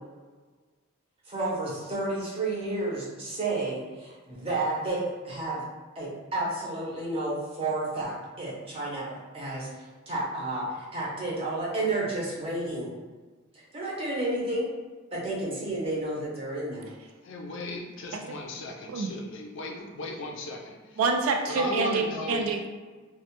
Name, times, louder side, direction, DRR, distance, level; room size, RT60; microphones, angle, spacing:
voice 1, 1.3-5.6 6.0-12.9 13.5-14.7 15.1-16.9, right 2 dB, 25° right, -5 dB, 0.6 m, -31 dB
voice 2, 17.2-21.0 21.5-22.5, left 2 dB, 60° left, 1 dB, 0.4 m, -36 dB
voice 3, 21.0-22.7, right 4 dB, 80° right, 4 dB, 0.3 m, -27 dB
2.1 x 2.0 x 2.9 m, 1.4 s
head